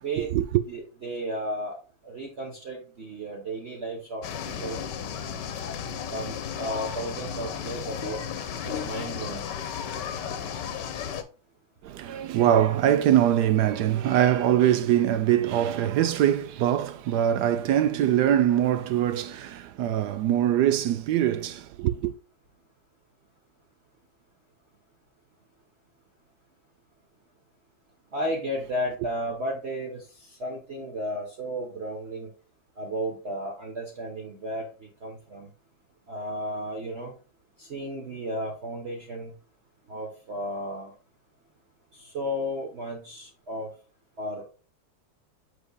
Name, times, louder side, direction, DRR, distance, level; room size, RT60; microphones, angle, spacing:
voice 1, 0.2-0.6 11.8-22.1, right 11 dB, 70° right, 1.0 m, -23 dB
voice 2, 0.7-1.7 2.0-4.8 6.1-8.2 8.6-9.5 28.1-30.0 30.4-32.3 32.8-34.6 35.0-35.5 36.1-37.1 37.6-39.3 39.9-40.9 42.0-43.7 44.2-44.4, equal, 40° right, 1.2 m, -33 dB
sound 1, 4.2-11.2, left 8 dB, 70° left, 1.4 m, -34 dB
8.1 x 5.2 x 2.2 m
omnidirectional pair, 2.1 m